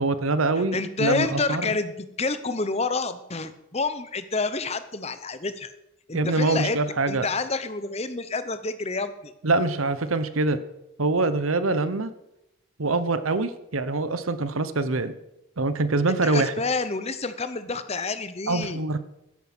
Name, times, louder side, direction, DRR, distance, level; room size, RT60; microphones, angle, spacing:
voice 1, 0.0-1.7 6.1-7.3 9.4-10.6 11.0-12.1 12.8-15.2 15.6-16.5 18.5-19.0, right 3 dB, 85° right, 12 dB, 1.0 m, -24 dB
voice 2, 0.7-5.7 6.1-6.8 7.1-9.3 16.2-18.8, left 3 dB, 30° left, 12 dB, 0.8 m, -28 dB
13.0 x 10.5 x 6.1 m, 0.87 s
head